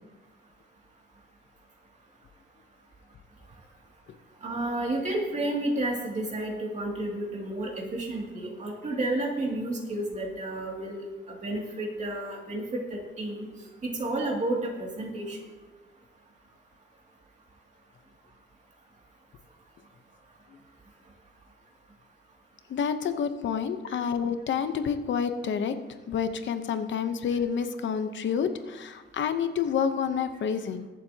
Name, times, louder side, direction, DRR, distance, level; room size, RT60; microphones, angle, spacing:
voice 1, 4.4-13.4 13.8-15.4, right 1 dB, 35° right, -1 dB, 2.5 m, -31 dB
voice 2, 22.7-25.8 26.1-30.9, left 7 dB, 70° left, 9 dB, 0.9 m, -28 dB
22.5 x 7.6 x 2.9 m, 1.2 s
wide cardioid pair, 170°, 20 cm